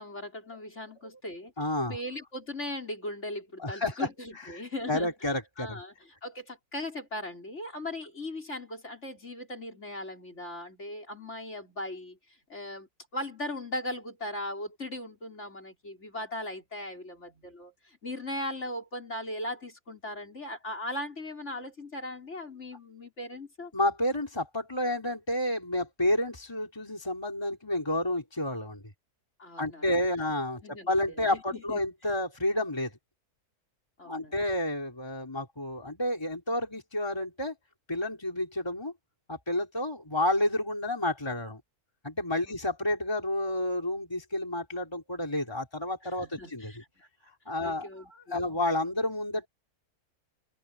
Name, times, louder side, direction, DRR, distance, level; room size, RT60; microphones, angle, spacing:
voice 1, 0.0-1.5 1.9-5.9 6.2-12.2 12.5-23.7 29.4-29.9 30.6-31.8 34.0-34.4 42.5-42.6 46.0-47.1 47.6-48.6, left 1 dB, 45° left, 5.7 m, -39 dB
voice 2, 1.6-2.0 3.6-4.1 4.4-4.5 4.9-5.8 23.7-28.8 29.6-32.9 34.1-37.5 37.9-38.9 39.3-41.6 42.0-46.7 47.5-49.5, left 1 dB, 15° left, 3.8 m, -30 dB
omnidirectional pair, 1.6 m